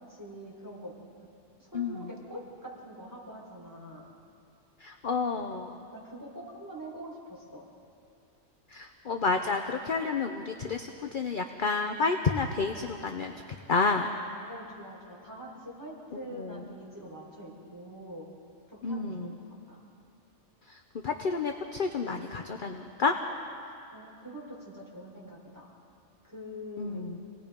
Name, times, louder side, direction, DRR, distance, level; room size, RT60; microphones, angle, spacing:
voice 1, 0.1-0.9 1.6-4.1 5.9-7.7 14.5-18.3 18.7-19.8 23.6-25.7 26.2-27.0, equal, 15° right, -4 dB, 5.1 m, -44 dB
voice 2, 1.7-2.1 4.8-5.8 8.7-13.3 13.7-14.1 16.4-16.6 18.8-19.3 20.7-23.1 26.8-27.2, left 4 dB, 45° left, 4 dB, 0.9 m, -30 dB
28.0 x 19.0 x 5.3 m, 2.6 s
omnidirectional pair, 1.4 m